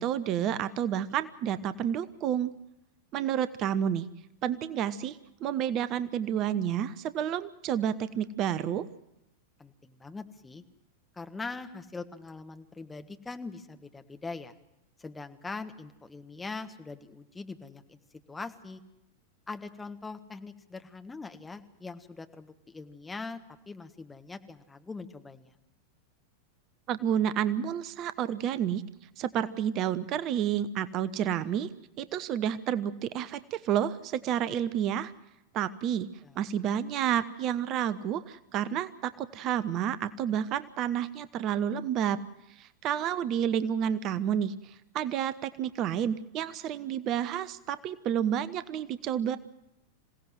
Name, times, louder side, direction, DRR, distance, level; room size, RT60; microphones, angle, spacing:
voice 1, 0.0-2.5 3.1-4.1 4.4-8.9 26.9-28.8 29.2-31.7 32.0-35.1 35.5-36.1 36.4-42.2 42.5-49.4, right 9 dB, 35° right, 15 dB, 0.8 m, -30 dB
voice 2, 9.6-10.6 11.1-14.5 15.0-18.0 18.3-18.8 19.5-23.4 23.7-25.5 36.2-36.4, left 3 dB, 10° left, 7 dB, 1.5 m, -42 dB
26.5 x 17.0 x 7.6 m, 0.92 s
figure-of-eight pair, 90°, 0 cm